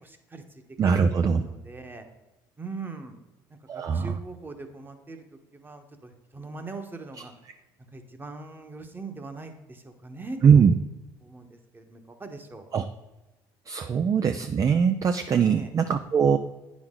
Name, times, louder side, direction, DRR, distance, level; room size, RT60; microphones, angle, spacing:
voice 1, 0.0-2.1 2.6-3.2 3.5-7.3 7.9-10.7 11.2-12.7 15.3-15.7, right 3 dB, 20° right, 6 dB, 1.2 m, -41 dB
voice 2, 0.8-1.4 3.7-4.1 10.4-10.7 12.7-12.8 13.7-16.4, right 6 dB, 40° right, 9 dB, 0.4 m, -21 dB
8.7 x 6.2 x 3.7 m, 1.1 s
supercardioid pair, 80°, 9 cm